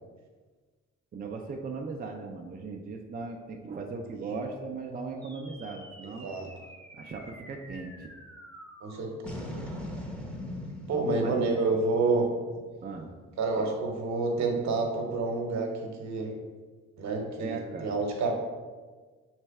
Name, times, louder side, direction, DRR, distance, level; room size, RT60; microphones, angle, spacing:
voice 1, 1.1-6.3 6.9-8.1 11.1-11.4 12.8-13.1 13.4-13.8 17.4-17.9, right 4 dB, 30° right, 2 dB, 0.4 m, -38 dB
sound 1, 5.2-13.8, left 1 dB, 5° left, 0.8 m, -43 dB
voice 2, 8.8-9.6 10.9-12.3 13.4-16.3 17.0-18.3, right 3 dB, 65° right, 2 dB, 1.0 m, -29 dB
3.3 x 3.2 x 4.6 m, 1.4 s
cardioid pair, 90°, 30 cm